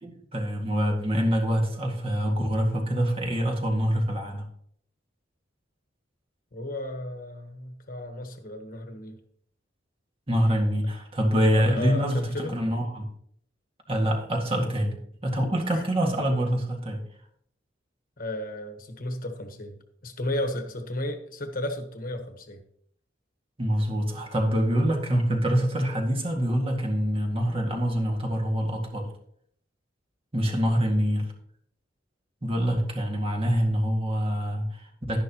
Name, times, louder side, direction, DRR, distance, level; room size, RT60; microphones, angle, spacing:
voice 1, 0.0-4.5 10.3-13.1 13.9-14.9 15.2-17.0 23.6-29.1 30.3-31.3 32.4-35.2, equal, 30° right, 1 dB, 1.9 m, -25 dB
voice 2, 6.5-9.2 11.5-12.5 15.7-15.8 18.2-22.6, left 1 dB, 45° left, 6 dB, 1.3 m, -34 dB
11.5 x 11.0 x 3.0 m, 0.65 s
head